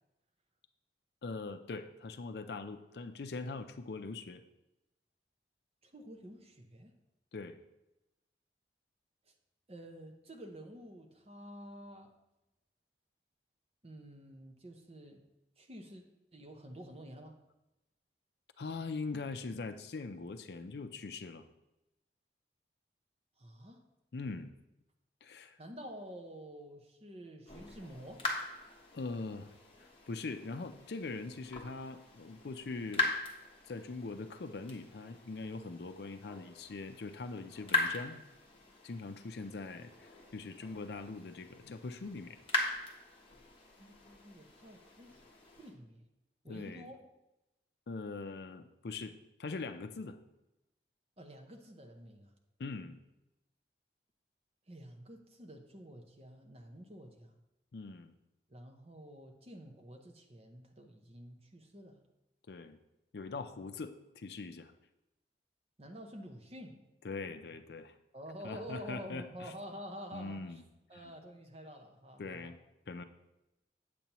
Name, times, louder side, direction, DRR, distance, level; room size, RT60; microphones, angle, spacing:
voice 1, 1.2-4.4 7.3-7.6 18.6-21.4 24.1-24.5 25.2-25.6 28.9-29.5 29.8-33.1 33.7-38.2 38.8-42.4 46.5-46.9 47.9-50.2 52.6-53.0 57.7-58.2 62.5-62.8 63.1-64.7 67.0-67.9 68.4-69.5 70.1-70.6 71.0-71.1 72.2-72.6 72.9-73.0, left 3 dB, 70° left, 9 dB, 0.5 m, -42 dB
voice 2, 5.8-6.9 9.7-12.1 13.8-15.2 15.6-16.0 16.3-17.4 23.4-23.8 25.6-28.3 43.8-45.2 45.6-46.1 46.4-47.1 51.2-52.3 54.7-57.4 58.5-62.0 65.8-66.8 68.1-70.4 70.9-72.5, equal, 35° right, 3 dB, 0.8 m, -49 dB
sound 1, 27.5-45.7, left 3 dB, 30° left, 1.1 m, -41 dB
8.3 x 6.9 x 3.0 m, 0.94 s
head